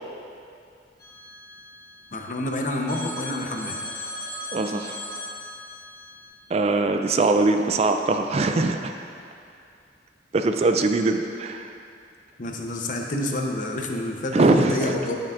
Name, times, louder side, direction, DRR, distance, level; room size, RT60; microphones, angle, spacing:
Telephone, 1.0-2.4 2.9-6.2, left 1 dB, 20° left, 1.3 m, -38 dB
voice 1, 2.1-3.8 12.4-15.2, left 1 dB, 45° left, 2 dB, 0.7 m, -28 dB
voice 2, 4.5-5.0 6.5-8.9 10.3-11.7 14.3-14.9, right 3 dB, 35° right, 6 dB, 0.3 m, -22 dB
10.0 x 8.9 x 2.5 m, 2.4 s
head